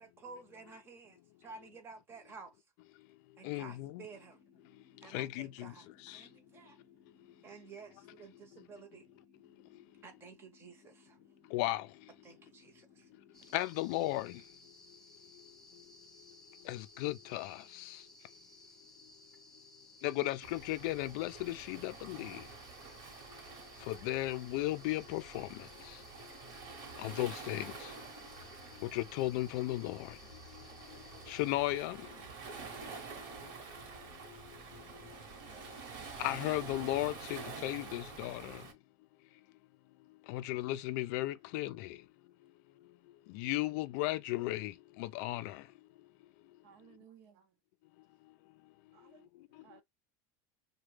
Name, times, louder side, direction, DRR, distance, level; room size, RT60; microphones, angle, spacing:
voice 1, 0.0-2.5 3.4-4.4 5.0-6.8 7.4-9.1 10.0-11.2 12.2-13.1 13.4-13.5, right 4 dB, 25° right, 0.8 m, -52 dB
voice 2, 3.4-4.0 5.1-5.7 6.1-6.2 11.5-11.9 13.5-14.4 16.7-18.0 20.0-22.4 23.9-25.5 27.0-27.7 28.9-30.1 31.3-32.0 36.2-38.6 40.3-42.0 43.3-44.7 45.0-45.6, left 16 dB, 65° left, 0.3 m, -35 dB
sound 1, 3.5-13.5, left 6 dB, 30° left, 0.9 m, -65 dB
sound 2, 13.3-31.5, left 2 dB, 5° left, 0.7 m, -59 dB
Waves surf, 20.4-38.7, right 4 dB, 50° right, 1.1 m, -48 dB
voice 3, 35.5-36.1 46.6-47.6 48.9-49.8, right 8 dB, 65° right, 0.7 m, -61 dB
2.9 x 2.2 x 3.2 m
supercardioid pair, 150°, 10 cm